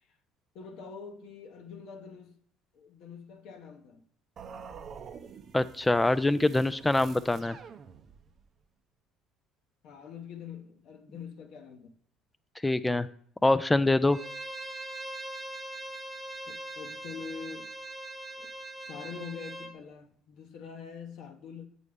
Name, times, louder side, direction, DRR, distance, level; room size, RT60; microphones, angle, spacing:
voice 1, 0.5-2.4 2.7-4.0 9.8-11.9 16.7-17.7 18.4-18.5 18.8-21.7, left 6 dB, 65° left, 0.8 m, -44 dB
sound 1, 4.4-8.5, right 6 dB, 50° right, 0.5 m, -48 dB
voice 2, 5.5-7.6 12.6-13.1 13.4-14.2, left 2 dB, 10° left, 0.4 m, -24 dB
Bowed string instrument, 14.1-19.7, right 1 dB, 15° right, 1.1 m, -41 dB
8.2 x 4.0 x 3.4 m
hypercardioid pair, 70°, 0 cm